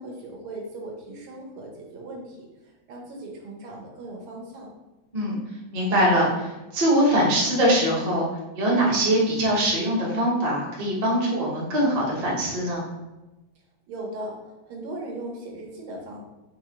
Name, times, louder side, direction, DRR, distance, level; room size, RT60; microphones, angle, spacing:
voice 1, 0.0-2.5 2.9-4.7 13.9-14.4 14.6-16.2, right 2 dB, 80° right, -1 dB, 1.7 m, -38 dB
voice 2, 5.7-8.3 8.5-12.8, right 1 dB, 40° right, -5 dB, 0.5 m, -22 dB
4.6 x 2.4 x 2.8 m, 1.0 s
omnidirectional pair, 2.3 m